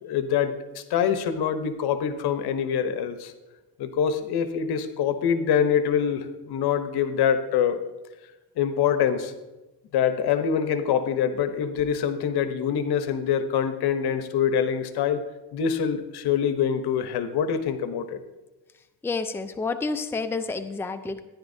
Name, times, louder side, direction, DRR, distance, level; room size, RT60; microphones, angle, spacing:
voice 1, 0.0-3.3 3.8-7.8 8.6-9.3 9.9-15.2 15.5-18.2, left 8 dB, 70° left, 10 dB, 0.9 m, -25 dB
voice 2, 19.0-21.2, left 4 dB, 5° left, 8 dB, 0.5 m, -29 dB
14.0 x 10.0 x 2.7 m, 1.1 s
cardioid pair, 90°, 39 cm